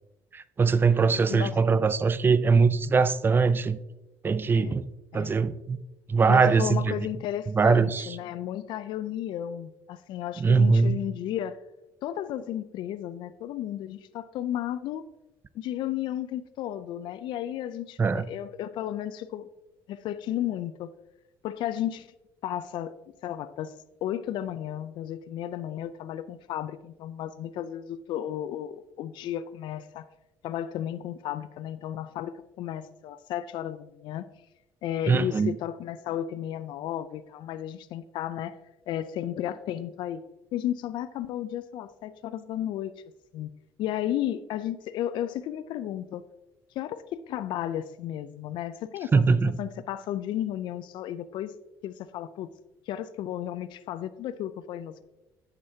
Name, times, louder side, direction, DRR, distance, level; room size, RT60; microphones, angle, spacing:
voice 1, 0.3-3.8 4.2-4.9 5.1-5.8 6.1-6.9 7.6-8.1 10.4-11.0 18.0-18.3 35.1-35.6 49.1-49.6, right 4 dB, 25° right, 0.4 m, -22 dB
voice 2, 6.3-11.6 12.0-15.0 15.5-19.5 19.9-20.9 21.4-22.1 22.4-22.9 23.2-23.7 24.0-30.1 30.4-34.3 34.8-38.6 38.9-40.2 40.5-42.9 43.3-43.5 43.8-46.3 46.8-51.5 51.8-52.5 52.9-55.0, left 11 dB, 65° left, 0.4 m, -33 dB
9.0 x 6.6 x 2.8 m
supercardioid pair, 90°, 9 cm